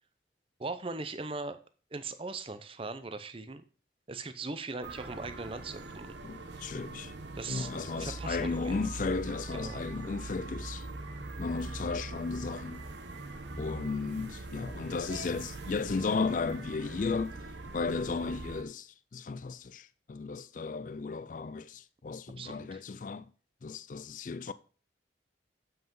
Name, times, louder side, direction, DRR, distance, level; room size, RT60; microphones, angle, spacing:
voice 1, 0.6-1.6 1.9-3.6 4.1-6.2 7.4-8.9 9.5-9.8 22.4-22.8, right 3 dB, 30° right, 0.7 m, -40 dB
sound 1, 4.8-18.6, right 2 dB, 80° right, 1.1 m, -42 dB
voice 2, 6.2-7.1 7.5-10.9 11.4-12.9 13.6-17.4 17.6-23.3 23.6-24.5, left 4 dB, 45° left, 0.4 m, -35 dB
7.7 x 5.8 x 5.4 m
head